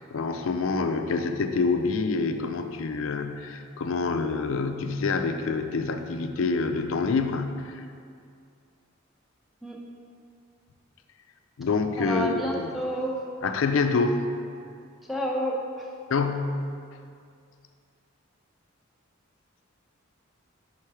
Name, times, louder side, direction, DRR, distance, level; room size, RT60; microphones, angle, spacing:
voice 1, 0.0-7.8 11.6-12.7 13.4-14.2 16.1-16.6, left 4 dB, 65° left, 7 dB, 0.4 m, -27 dB
voice 2, 12.0-13.2 15.1-15.9, right 1 dB, ahead, -2 dB, 0.7 m, -30 dB
5.6 x 4.4 x 4.8 m, 2.3 s
head